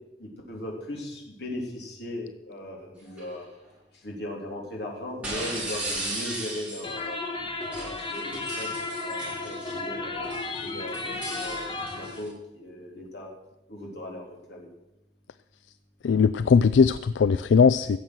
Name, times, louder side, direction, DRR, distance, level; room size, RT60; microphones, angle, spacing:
voice 1, 0.2-3.4 4.0-7.2 7.8-8.7 9.0-10.2 10.6-11.7 11.9-13.3 13.7-14.7, left 1 dB, 65° left, -2 dB, 3.6 m, -38 dB
sound 1, 3.1-3.3 5.2-7.0 7.6-9.8 10.2-12.3, right 1 dB, 10° right, 6.2 m, -36 dB
sound 2, 6.8-12.2, left 3 dB, 30° left, 1.6 m, -34 dB
voice 2, 16.0-18.0, left 5 dB, 90° left, 15 dB, 0.4 m, -19 dB
16.5 x 7.3 x 6.3 m, 0.91 s
head